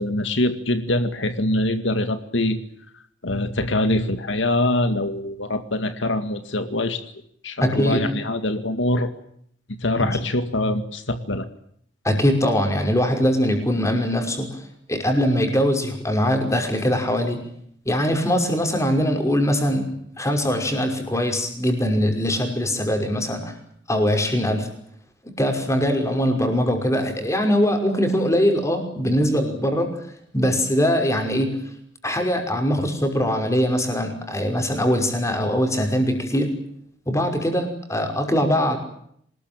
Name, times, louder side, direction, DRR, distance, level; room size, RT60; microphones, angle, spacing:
voice 1, 0.0-2.6 3.2-7.0 7.4-9.1 9.8-11.5, left 1 dB, 75° left, 9 dB, 2.2 m, -24 dB
voice 2, 7.6-8.1 9.9-10.2 12.0-17.4 17.9-19.9 20.2-23.5 23.9-24.7 25.2-30.0 30.3-31.6 32.0-36.5 37.1-38.8, equal, 15° left, 5 dB, 5.5 m, -22 dB
26.0 x 20.5 x 8.9 m, 0.68 s
head